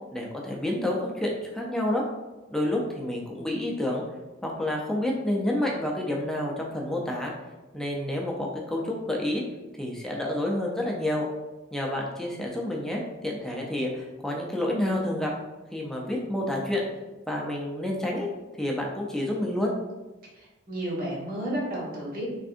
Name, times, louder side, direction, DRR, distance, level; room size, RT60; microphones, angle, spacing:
voice 1, 0.1-2.0 2.5-4.0 4.4-7.3 7.7-9.4 9.8-11.3 11.7-15.3 15.7-16.9 17.3-18.3 18.6-19.7, left 1 dB, 5° left, -2 dB, 0.4 m, -29 dB
voice 2, 20.3-22.3, right 1 dB, 50° right, -5 dB, 1.1 m, -32 dB
3.4 x 2.6 x 2.5 m, 1.1 s
head